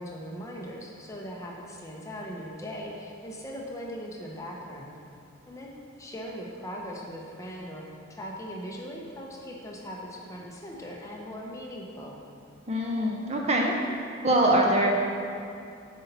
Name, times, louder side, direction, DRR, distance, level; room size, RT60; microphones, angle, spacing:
voice 1, 0.0-5.0 5.5-5.7 6.0-12.2, equal, 15° left, -2 dB, 0.7 m, -39 dB
voice 2, 12.7-13.7 14.2-14.9, right 1 dB, 30° right, 0 dB, 0.6 m, -23 dB
8.0 x 5.5 x 4.1 m, 2.5 s
head